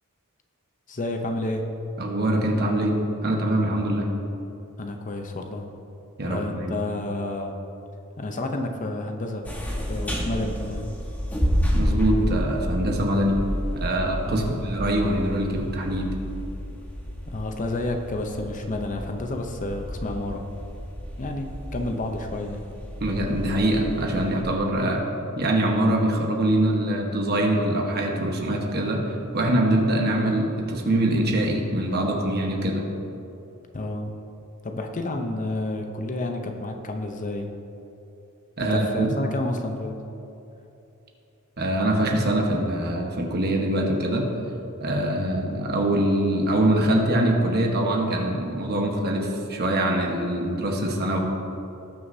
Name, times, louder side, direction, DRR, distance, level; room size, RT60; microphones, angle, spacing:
voice 1, 0.9-1.6 4.8-5.7 6.2-7.5 8.2-9.5 9.9-11.0 14.2-14.6 17.3-20.4 21.2-22.7 33.7-34.1 34.6-37.5 38.7-40.0, left 2 dB, 35° left, 4 dB, 0.7 m, -30 dB
voice 2, 2.0-4.1 6.2-6.8 11.7-13.4 13.7-16.1 23.0-25.0 25.4-32.9 38.6-39.1 41.6-44.2 44.8-51.2, right 1 dB, 45° right, 1 dB, 1.2 m, -23 dB
sound 1, 9.4-24.4, equal, 10° left, 1.2 m, -30 dB
18.5 x 6.3 x 2.7 m, 2.9 s
head